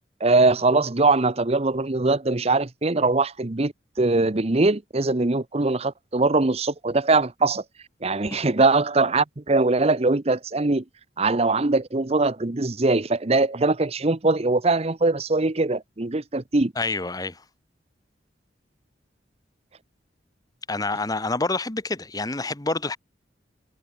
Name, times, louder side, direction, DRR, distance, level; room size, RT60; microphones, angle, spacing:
voice 1, 0.2-3.7 4.0-7.6 8.0-10.8 11.2-16.7, right 3 dB, 35° right, 0.9 m, -22 dB
voice 2, 16.7-17.4 20.7-23.0, left 3 dB, 20° left, 1.3 m, -27 dB
head